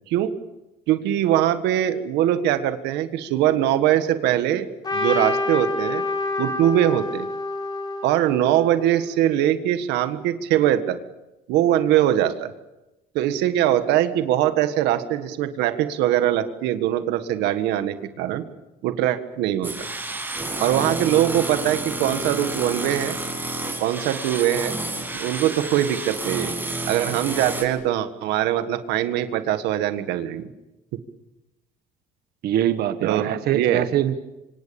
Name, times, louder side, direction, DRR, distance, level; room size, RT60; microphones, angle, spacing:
voice 1, 0.9-6.0 6.4-7.3 8.0-11.0 11.5-12.5 13.1-18.4 18.8-19.7 20.6-23.2 23.8-24.8 25.1-26.5 26.9-30.5 33.0-33.9, right 12 dB, 90° right, 10 dB, 1.6 m, -22 dB
Trumpet, 4.8-9.0, left 2 dB, 25° left, 4.9 m, -27 dB
sound 1, 19.6-27.6, right 2 dB, 10° right, 6.3 m, -30 dB
voice 2, 32.4-34.1, right 11 dB, 65° right, 10 dB, 1.4 m, -23 dB
26.5 x 25.5 x 7.1 m, 0.98 s
cardioid pair, 110°, 17 cm